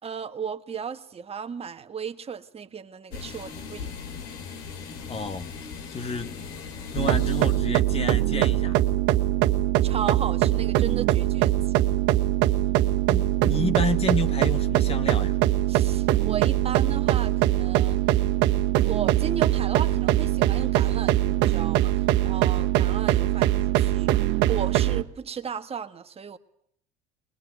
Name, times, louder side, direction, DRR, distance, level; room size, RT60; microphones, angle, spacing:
voice 1, 0.0-3.9 9.8-11.9 15.7-18.0 18.8-26.4, right 7 dB, 30° right, 1.7 m, -35 dB
sound 1, 3.1-9.1, left 5 dB, 80° left, 2.9 m, -39 dB
voice 2, 5.1-5.5 5.9-6.4 6.9-8.8 13.1-15.4, left 4 dB, 30° left, 1.5 m, -30 dB
sound 2, 7.0-25.0, right 14 dB, 70° right, 1.4 m, -22 dB
22.5 x 22.0 x 9.4 m
supercardioid pair, 105°, 19 cm